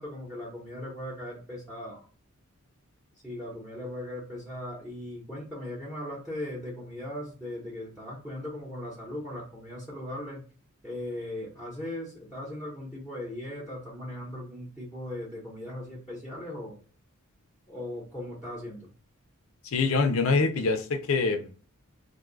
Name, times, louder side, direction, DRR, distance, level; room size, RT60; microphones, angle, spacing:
voice 1, 0.0-2.1 3.2-10.4 10.8-16.8 17.7-18.9, left 1 dB, 5° right, 0.9 m, -38 dB
voice 2, 19.6-21.6, left 4 dB, 65° left, 0.5 m, -25 dB
2.6 x 2.3 x 3.8 m
head